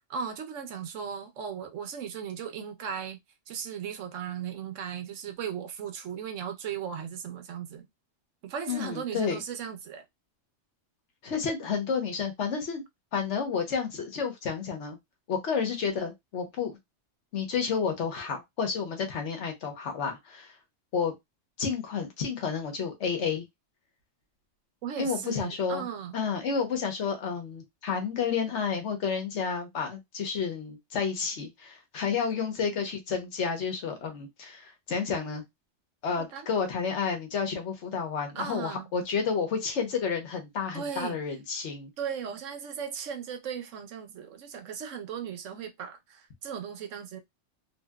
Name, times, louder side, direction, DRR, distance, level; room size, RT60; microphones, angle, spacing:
voice 1, 0.1-3.2 3.5-7.8 8.4-10.0 24.8-26.2 36.2-36.5 38.3-38.9 40.7-41.2 42.0-47.2, right 7 dB, 90° right, 1.1 m, -37 dB
voice 2, 8.7-9.4 11.2-12.8 13.1-15.0 15.3-16.8 17.3-20.5 20.9-21.1 21.6-23.4 25.0-25.9 26.1-35.4 36.0-41.9, left 6 dB, 70° left, 1.2 m, -30 dB
2.9 x 2.8 x 2.2 m
omnidirectional pair, 1.3 m